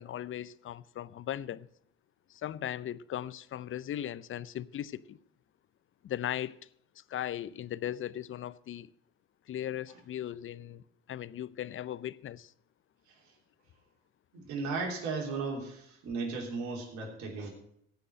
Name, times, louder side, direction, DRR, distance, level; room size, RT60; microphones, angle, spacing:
voice 1, 0.0-1.7 2.3-5.2 6.0-6.6 7.0-8.9 9.5-10.8 11.1-12.5, left 11 dB, 45° left, 0.6 m, -38 dB
voice 2, 14.3-17.5, right 4 dB, 70° right, 3.3 m, -36 dB
15.5 x 5.3 x 7.6 m
supercardioid pair, 70°, 30 cm